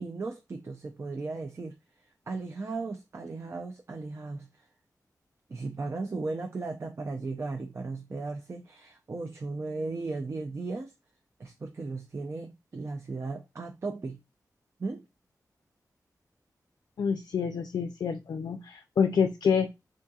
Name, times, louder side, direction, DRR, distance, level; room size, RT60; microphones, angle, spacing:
voice 1, 0.0-1.8 2.3-4.5 5.5-10.9 11.4-14.2 14.8-15.0, right 3 dB, 40° right, 0.4 m, -36 dB
voice 2, 17.0-19.7, left 6 dB, 80° left, 0.4 m, -27 dB
3.6 x 2.7 x 2.3 m
wide cardioid pair, 95°, 7 cm